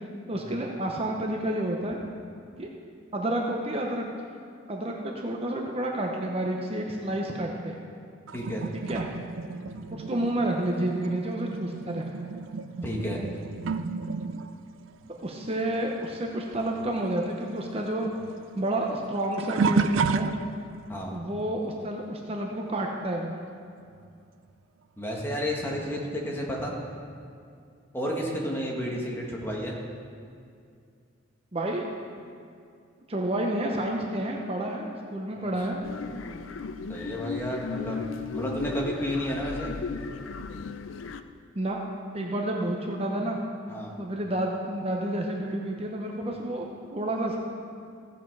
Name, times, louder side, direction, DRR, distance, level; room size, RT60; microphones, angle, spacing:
voice 1, 0.3-2.0 2.6-2.7 3.1-4.1 4.7-7.8 8.7-9.0 9.9-12.1 15.2-18.1 18.6-20.3 21.1-23.3 31.5-31.8 33.1-35.8 41.5-41.8 42.1-43.4 44.0-46.6 46.9-47.4, right 1 dB, 30° right, 0 dB, 0.8 m, -30 dB
sound 1, 8.3-16.3 16.5-20.9 21.5-21.8 24.1-24.2 25.0-25.1, right 4 dB, 85° right, 0.4 m, -32 dB
voice 2, 12.8-13.2 20.9-21.1 25.0-26.7 27.9-29.8 35.3-35.4 36.9-38.0 38.3-39.7 43.7-43.9, equal, 10° left, -2 dB, 1.6 m, -31 dB
sound 2, 35.8-41.2, left 4 dB, 85° left, 0.5 m, -35 dB
15.5 x 6.9 x 4.7 m, 2.3 s
head